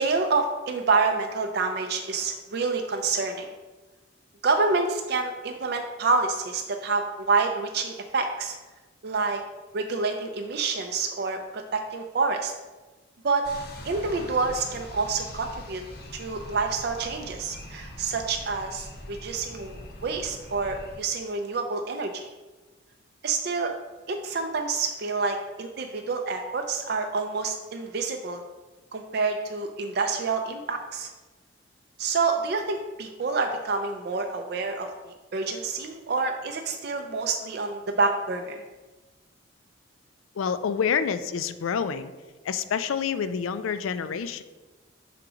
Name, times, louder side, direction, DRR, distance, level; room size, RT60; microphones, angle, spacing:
voice 1, 0.0-3.5 4.4-8.6 9.0-9.4 9.7-12.5 13.2-13.4 13.8-15.8 16.1-22.2 23.2-23.7 24.1-28.4 28.9-31.1 32.0-38.6, right 4 dB, 50° right, 4 dB, 0.4 m, -28 dB
sound 1, 13.4-21.0, left 1 dB, 50° left, 0.7 m, -42 dB
voice 2, 40.4-42.1 42.4-44.4, left 6 dB, 85° left, 12 dB, 0.4 m, -27 dB
5.9 x 3.9 x 4.8 m, 1.2 s
head